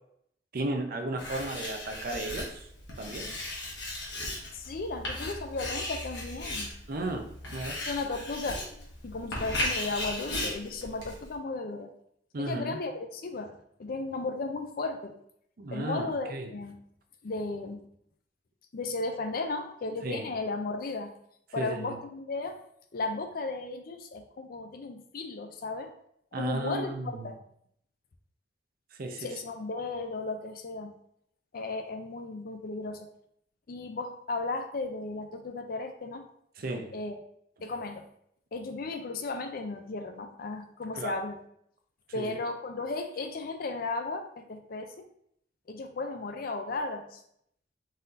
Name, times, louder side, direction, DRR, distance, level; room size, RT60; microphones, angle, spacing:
voice 1, 0.5-2.7 3.0-3.3 6.9-7.2 7.5-7.8 12.3-12.8 15.6-16.5 20.0-20.3 21.6-22.0 26.3-27.3 28.9-29.3 36.6-36.9 40.9-41.2 42.1-42.4, right 2 dB, 55° right, 5 dB, 0.6 m, -34 dB
Writing, 1.2-11.3, left 1 dB, 70° left, 1.2 m, -36 dB
voice 2, 4.5-6.7 7.9-11.9 12.4-13.5 13.8-15.1 15.7-16.8 17.2-17.8 18.7-21.1 21.5-22.6 22.9-25.9 26.4-26.9 27.2-27.4 29.2-30.9 31.5-33.1 33.7-36.3 36.9-37.2 37.6-38.0 38.5-41.4 42.1-45.1 45.7-47.2, left 3 dB, 55° left, 6 dB, 0.5 m, -35 dB
4.1 x 2.7 x 3.7 m, 0.70 s
head